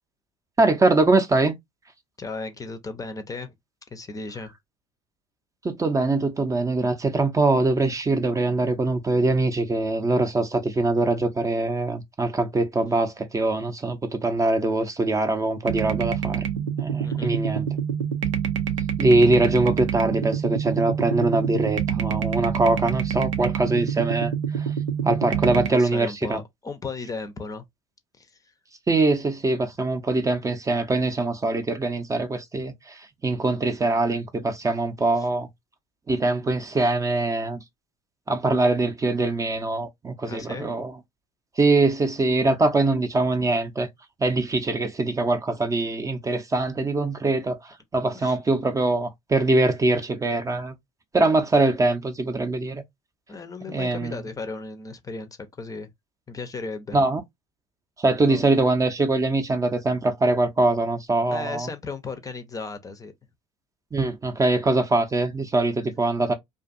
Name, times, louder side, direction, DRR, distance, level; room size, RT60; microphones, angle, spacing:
voice 1, 0.6-1.5 5.6-16.4 16.8-17.7 19.0-24.7 25.0-26.4 28.9-35.5 36.1-37.6 38.3-41.0 41.6-43.9 44.2-50.7 51.1-52.8 53.6-54.2 56.9-57.2 58.0-61.7 63.9-66.3, right 2 dB, 20° right, 0.6 m, -23 dB
voice 2, 2.2-3.5 3.9-4.5 17.0-17.3 25.7-27.6 28.2-28.4 35.2-35.3 40.2-40.7 48.1-48.4 53.3-55.3 55.6-55.9 56.3-57.0 58.2-58.6 61.3-63.1, left 3 dB, 20° left, 0.6 m, -35 dB
sound 1, 15.6-25.7, right 8 dB, 85° right, 0.6 m, -27 dB
2.5 x 2.5 x 2.5 m
hypercardioid pair, 75°, 16 cm